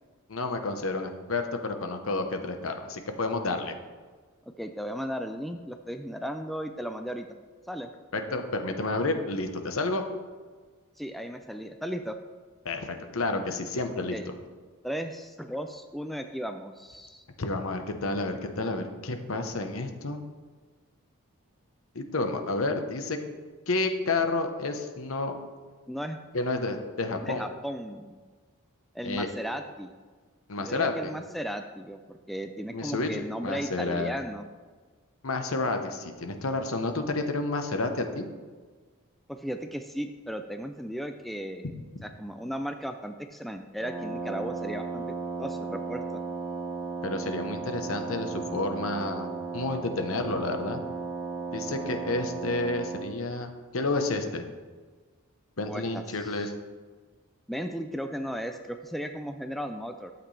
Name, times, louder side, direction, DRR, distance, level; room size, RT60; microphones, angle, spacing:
voice 1, 0.3-3.8 8.1-10.0 12.6-14.3 17.4-20.2 21.9-23.2 23.7-25.3 26.3-27.4 29.0-29.3 30.5-31.1 32.7-34.1 35.2-38.3 47.0-49.3 49.5-50.8 51.5-54.5 55.6-56.5, left 2 dB, 70° left, 6 dB, 1.0 m, -30 dB
voice 2, 4.6-7.3 7.7-7.9 11.0-12.2 14.1-14.3 14.8-17.2 25.9-26.2 27.2-28.2 28.9-29.9 30.6-34.4 39.3-41.7 42.0-45.0 45.4-46.0 55.6-56.5 57.5-60.1, equal, ahead, 6 dB, 0.3 m, -35 dB
Wind instrument woodwind instrument, 43.8-53.1, right 4 dB, 15° right, 1.3 m, -35 dB
12.0 x 7.9 x 3.3 m, 1.4 s
head